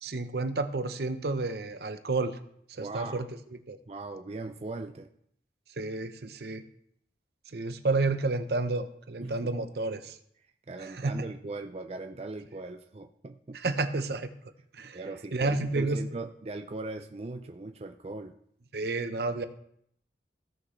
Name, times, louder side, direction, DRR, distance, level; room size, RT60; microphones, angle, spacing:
voice 1, 0.0-2.3 2.7-3.3 3.7-3.8 5.8-6.6 7.5-10.2 11.0-11.1 13.5-14.3 14.7-15.0 15.3-16.0 18.7-19.5, right 3 dB, 65° right, 10 dB, 0.7 m, -30 dB
voice 2, 2.8-3.2 3.9-5.1 9.2-9.5 10.7-13.8 14.8-18.3, right 2 dB, 35° right, 5 dB, 0.4 m, -39 dB
16.5 x 6.1 x 3.2 m, 0.69 s
head